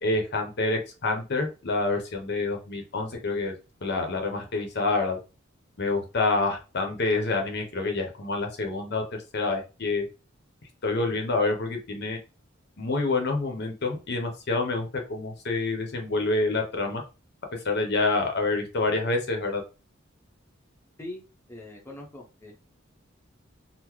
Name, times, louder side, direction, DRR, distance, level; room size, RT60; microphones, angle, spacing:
voice 1, 0.0-3.5 3.8-5.2 5.8-9.0 9.3-10.1 10.8-12.2 12.8-17.0 17.6-19.6, left 3 dB, 55° left, 3 dB, 0.8 m, -27 dB
voice 2, 21.0-22.5, left 1 dB, 10° left, -1 dB, 0.7 m, -42 dB
3.8 x 2.1 x 3.0 m, 0.30 s
head